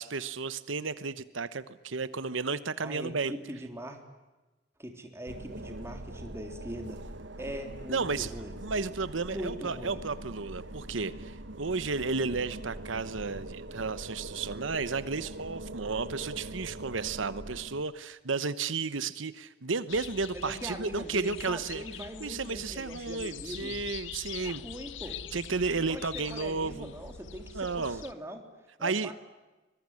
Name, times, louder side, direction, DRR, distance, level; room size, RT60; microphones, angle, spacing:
voice 1, 0.0-3.3 7.9-8.3 8.6-21.8 22.2-24.6 25.3-26.9 27.5-28.0 28.8-29.1, right 4 dB, 90° right, 14 dB, 1.1 m, -33 dB
voice 2, 2.8-4.0 4.8-7.0 7.4-8.5 9.3-10.0 20.3-23.8 24.4-25.2 25.8-28.4 28.8-29.1, equal, 15° right, 4 dB, 3.6 m, -41 dB
sound 1, 5.3-17.8, right 1 dB, 75° right, 1.6 m, -42 dB
sound 2, 19.9-28.1, left 8 dB, 75° left, 0.9 m, -44 dB
25.5 x 21.5 x 9.9 m, 1.2 s
head